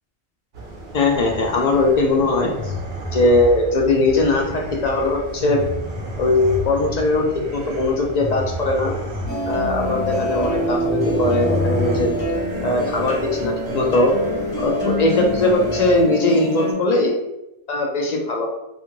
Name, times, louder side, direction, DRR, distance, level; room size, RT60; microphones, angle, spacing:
sound 1, 0.5-16.0, equal, 75° right, 0.9 m, -30 dB
voice 1, 0.9-2.7 3.1-5.6 6.2-7.2 7.5-8.9 9.5-12.1 12.6-14.1 14.6-17.1 17.7-18.5, left 2 dB, 55° left, 1 dB, 0.5 m, -19 dB
sound 2, 9.3-16.7, equal, 10° right, 1.4 m, -26 dB
2.7 x 2.5 x 2.8 m, 0.90 s
omnidirectional pair, 1.1 m